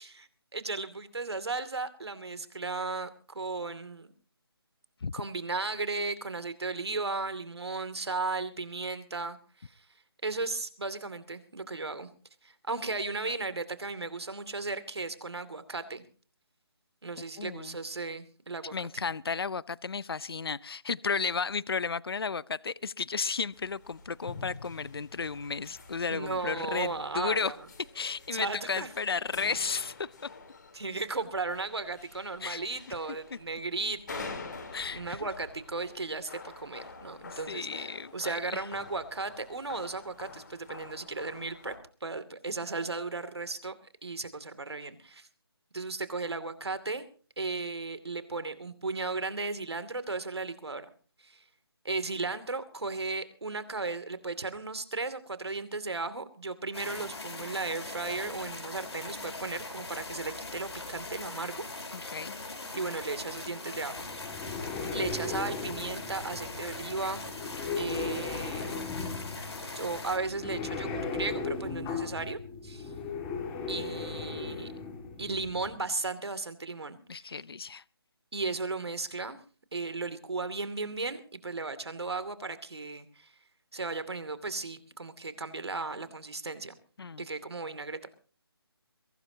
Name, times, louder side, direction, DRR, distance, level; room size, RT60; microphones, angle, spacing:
voice 1, 0.0-4.1 5.1-9.8 10.2-12.1 12.4-16.0 17.0-18.7 26.1-27.6 28.3-28.9 30.7-34.4 34.9-41.7 42.0-43.7 44.0-45.3 45.7-47.0 47.4-50.9 51.2-51.4 51.8-61.6 62.0-62.3 62.7-64.0 64.9-67.2 67.8-68.7 69.7-72.9 73.7-74.7 75.2-77.4 78.3-79.4 79.7-83.3 83.7-86.7 87.2-88.1, right 3 dB, 80° right, 12 dB, 2.6 m, -35 dB
voice 2, 17.4-17.8 18.7-27.6 27.9-30.1 32.4-32.6 33.3-33.4 34.7-35.3 37.3-38.7 61.9-62.3 77.1-77.8 87.0-87.3, left 5 dB, 65° left, 21 dB, 0.6 m, -33 dB
sound 1, 23.5-41.8, left 4 dB, 45° left, 3.6 m, -47 dB
sound 2, 56.7-70.2, left 3 dB, 85° left, 4.4 m, -41 dB
sound 3, 64.0-75.7, left 4 dB, 10° left, 2.1 m, -37 dB
22.5 x 17.5 x 2.9 m, 0.39 s
figure-of-eight pair, 170°, 13 cm